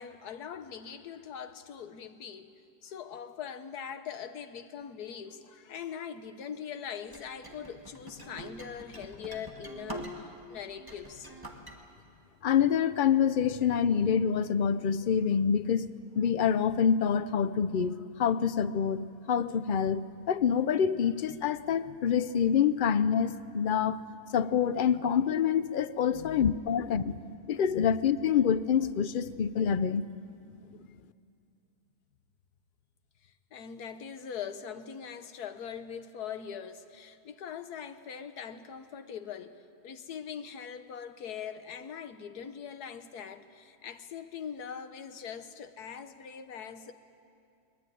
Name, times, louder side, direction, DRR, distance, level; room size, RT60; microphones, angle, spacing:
voice 1, 0.0-11.3 24.7-24.8 26.1-26.5 33.2-46.9, left 7 dB, 80° left, 10 dB, 1.5 m, -42 dB
sound 1, 7.1-10.4 10.8-11.8, right 1 dB, 15° right, 2.0 m, -44 dB
voice 2, 12.4-20.0 20.3-24.0 24.3-27.2 27.5-30.1, left 7 dB, 60° left, 13 dB, 0.5 m, -26 dB
22.0 x 20.5 x 9.3 m, 2.5 s
omnidirectional pair, 1.6 m